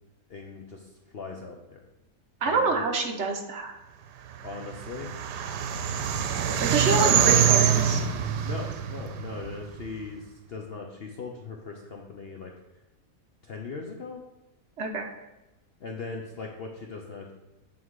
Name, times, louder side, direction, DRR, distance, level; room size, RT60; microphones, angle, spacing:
voice 1, 0.3-1.8 2.5-2.8 4.4-5.1 6.5-6.9 8.4-12.5 13.4-14.2 15.8-17.3, left 4 dB, 60° left, 1 dB, 0.6 m, -39 dB
voice 2, 2.4-3.8 6.6-8.0 14.8-15.1, right 3 dB, 50° right, 3 dB, 1.0 m, -27 dB
sound 1, 4.5-9.9, right 8 dB, 90° right, 1.2 m, -25 dB
7.8 x 3.7 x 4.6 m, 1.0 s
omnidirectional pair, 1.7 m